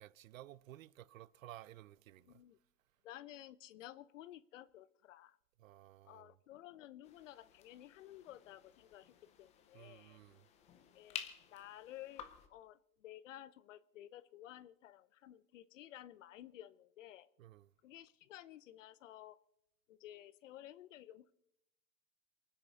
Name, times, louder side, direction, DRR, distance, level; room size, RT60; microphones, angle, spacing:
voice 1, 0.0-2.4 5.6-6.4 9.7-10.5 17.4-17.7, right 14 dB, 55° right, 0.7 m, -55 dB
voice 2, 2.2-2.6 3.0-5.4 6.0-10.2 10.9-11.2 11.5-17.3 17.8-19.4 19.9-21.3, left 13 dB, 50° left, 0.8 m, -54 dB
sound 1, 7.0-12.5, left 9 dB, 15° left, 0.7 m, -52 dB
28.0 x 9.6 x 4.0 m
hypercardioid pair, 145°, 48 cm